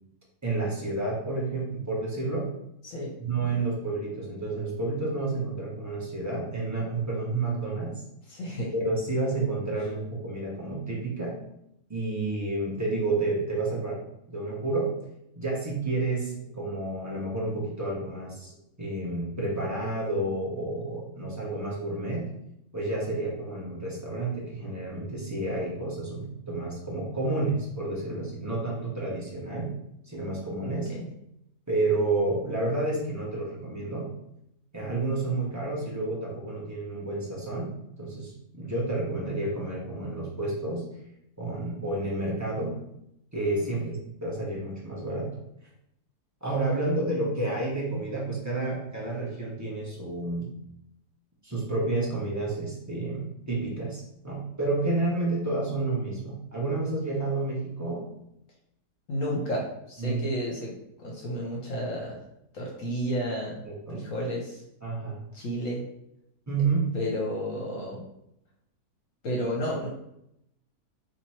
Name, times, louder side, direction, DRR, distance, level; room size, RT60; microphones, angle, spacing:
voice 1, 0.4-2.5 3.2-7.9 8.7-11.4 11.9-14.0 14.3-14.9 15.4-18.5 18.8-22.3 22.7-29.7 30.0-30.9 31.7-34.1 34.7-37.7 38.0-40.8 41.4-42.7 43.3-45.3 46.4-50.5 51.4-58.0 60.0-60.2 63.6-64.0 64.8-65.2 66.5-66.9, right 2 dB, 15° right, -5 dB, 0.7 m, -30 dB
voice 2, 2.8-3.5 8.3-8.7 30.7-31.1 43.8-43.9 59.1-60.7 61.0-62.2 62.5-63.6 63.9-64.6 65.3-65.8 66.9-68.0 69.2-69.9, equal, 60° left, -2 dB, 1.0 m, -32 dB
2.9 x 2.9 x 4.3 m, 0.79 s
omnidirectional pair, 1.7 m